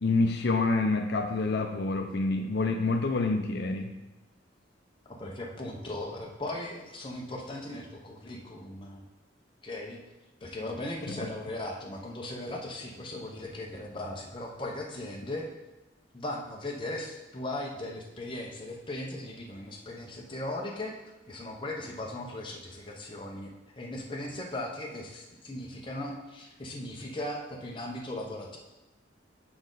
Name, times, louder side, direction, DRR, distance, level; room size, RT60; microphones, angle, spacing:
voice 1, 0.0-4.0 11.1-11.3, left 3 dB, 55° left, 5 dB, 0.5 m, -27 dB
voice 2, 5.1-9.0 9.6-10.0 10.4-15.5 16.1-23.5 23.8-28.6, left 1 dB, 25° left, -1 dB, 0.8 m, -38 dB
8.6 x 5.2 x 3.8 m, 1.1 s
head